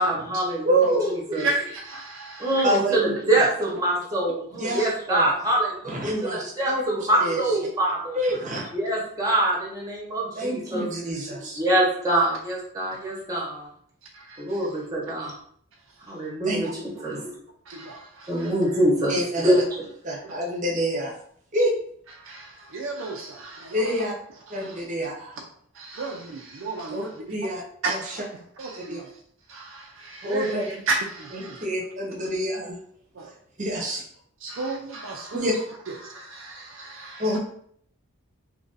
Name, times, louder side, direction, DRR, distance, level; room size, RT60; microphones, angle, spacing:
voice 1, 0.0-1.5 2.4-8.2 8.7-10.9 11.4-13.7 14.4-15.3 16.1-16.7 17.0-17.3 18.3-19.6, right 1 dB, 15° right, 1.0 m, -24 dB
voice 2, 0.6-1.2 2.6-3.5 4.6-5.3 5.9-6.8 7.2-7.4 8.1-8.7 10.4-11.6 16.4-16.6 19.1-19.5 20.0-21.1 21.5-21.7 23.7-24.1 24.5-25.4 26.9-27.6 27.9-28.2 28.9-29.0 30.2-30.7 31.3-32.7 33.6-34.0 35.3-35.5 37.2-37.4, right 1 dB, 35° right, 0.8 m, -27 dB
voice 3, 1.3-2.6 14.1-14.4 17.7-18.5 20.2-20.3 22.2-24.0 24.5-24.8 25.8-27.5 27.8-28.2 28.6-29.1 29.5-31.7 33.2-33.3 34.4-35.6 36.0-37.4, right 3 dB, 60° right, 0.5 m, -33 dB
2.9 x 2.6 x 3.9 m
head